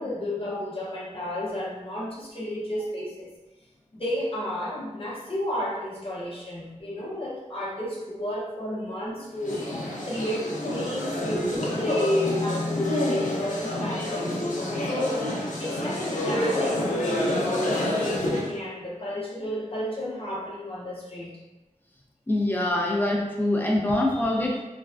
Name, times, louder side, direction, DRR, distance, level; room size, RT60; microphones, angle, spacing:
voice 1, 0.0-3.3 3.9-9.7 10.0-14.3 14.8-15.3 15.6-21.3, left 1 dB, 45° left, -6 dB, 0.8 m, -32 dB
sound 1, 9.4-18.6, left 1 dB, 75° left, 0.6 m, -28 dB
voice 2, 22.3-24.6, left 1 dB, 15° left, -3 dB, 0.6 m, -24 dB
3.4 x 2.2 x 2.4 m, 1.1 s
wide cardioid pair, 70°, 13 cm